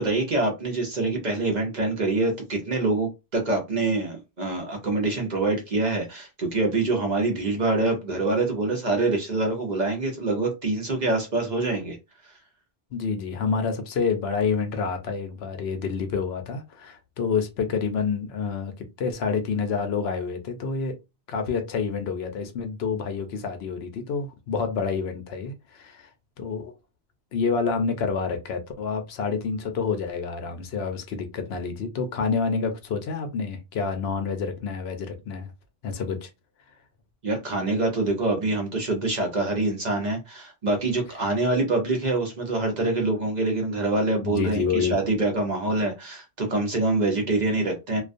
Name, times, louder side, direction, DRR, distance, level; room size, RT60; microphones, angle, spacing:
voice 1, 0.0-12.0 37.2-48.0, right 2 dB, 50° right, 0.7 m, -25 dB
voice 2, 12.9-20.9 21.3-26.1 26.4-26.7 27.3-35.5 35.8-36.3 44.2-45.0, left 5 dB, 70° left, 0.8 m, -28 dB
2.3 x 2.2 x 2.5 m
omnidirectional pair, 1.1 m